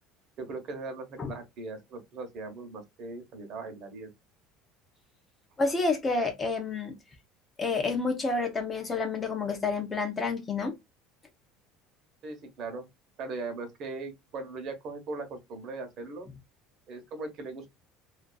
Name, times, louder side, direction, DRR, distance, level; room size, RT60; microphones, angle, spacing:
voice 1, 0.4-4.1 12.2-12.9 13.2-16.3 16.9-17.7, right 3 dB, 45° right, 0.8 m, -39 dB
voice 2, 5.6-7.0 7.6-10.7, left 3 dB, 20° left, 0.5 m, -29 dB
2.4 x 2.3 x 2.2 m
cardioid pair, 155°, 0 cm